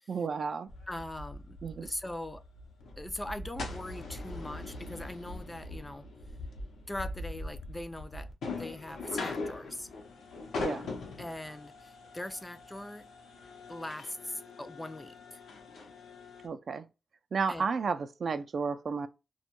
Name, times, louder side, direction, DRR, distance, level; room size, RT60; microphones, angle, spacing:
voice 1, 0.1-0.7 1.6-1.9 10.6-10.8 16.4-16.9 17.3-19.1, right 5 dB, 65° right, 0.3 m, -32 dB
sound 1, 0.7-16.5, left 2 dB, 85° left, 0.6 m, -42 dB
voice 2, 0.9-2.4 3.0-6.1 6.9-9.9 11.2-13.1 13.7-15.4 17.5-17.7, left 1 dB, 15° left, 0.4 m, -41 dB
2.2 x 2.1 x 2.9 m
cardioid pair, 60°, 0 cm